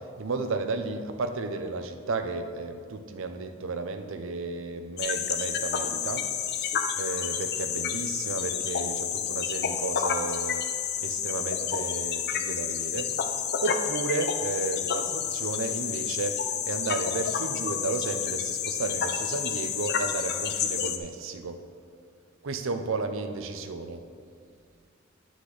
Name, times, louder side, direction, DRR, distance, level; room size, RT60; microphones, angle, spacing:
voice 1, 0.0-6.2 6.5-10.7 11.0-13.2 13.6-21.6 22.4-24.0, right 3 dB, 65° right, 7 dB, 0.6 m, -33 dB
sound 1, 5.0-21.0, left 8 dB, 50° left, 0.5 m, -30 dB
9.7 x 6.1 x 3.9 m, 2.3 s
head